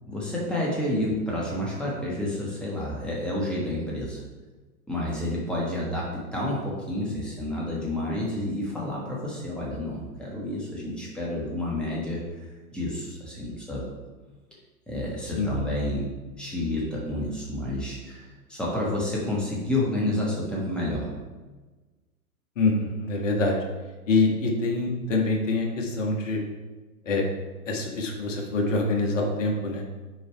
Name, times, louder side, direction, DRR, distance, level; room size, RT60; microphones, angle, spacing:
voice 1, 0.1-4.2 4.9-6.1 6.3-12.2 12.7-13.8 14.9-16.1 16.4-21.1, left 1 dB, ahead, -4 dB, 1.2 m, -29 dB
voice 2, 22.6-23.6 24.1-26.4 27.0-27.2 27.6-29.8, left 3 dB, 55° left, 1 dB, 1.5 m, -25 dB
5.4 x 4.7 x 4.5 m, 1.2 s
figure-of-eight pair, 110°, 44 cm